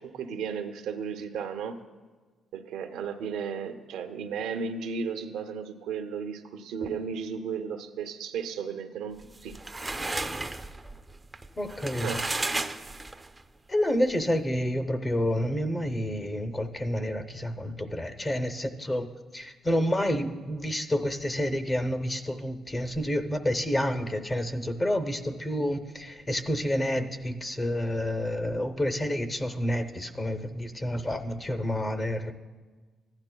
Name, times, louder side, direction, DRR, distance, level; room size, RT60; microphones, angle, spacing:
voice 1, 0.0-1.8 2.5-9.6 12.0-12.3, right 6 dB, 90° right, 6 dB, 0.6 m, -34 dB
sound 1, 9.2-13.4, right 2 dB, 15° right, 0.4 m, -33 dB
voice 2, 11.6-12.1 13.7-32.3, equal, 20° left, 9 dB, 0.6 m, -29 dB
15.0 x 10.5 x 2.2 m, 1.4 s
cardioid pair, 90°, 0 cm